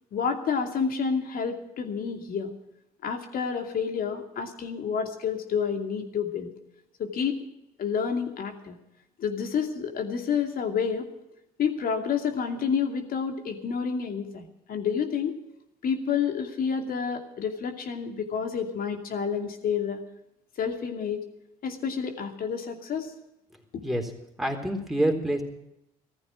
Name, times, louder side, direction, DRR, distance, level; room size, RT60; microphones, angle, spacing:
voice 1, 0.1-2.5 3.0-6.5 7.0-7.4 7.8-8.8 9.2-11.1 11.6-15.3 15.8-20.0 20.6-21.2 21.6-23.1, left 6 dB, 55° left, 5 dB, 2.6 m, -29 dB
voice 2, 24.4-25.4, right 1 dB, ahead, 2 dB, 3.9 m, -26 dB
15.5 x 14.0 x 6.0 m, 0.84 s
hypercardioid pair, 55°, 18 cm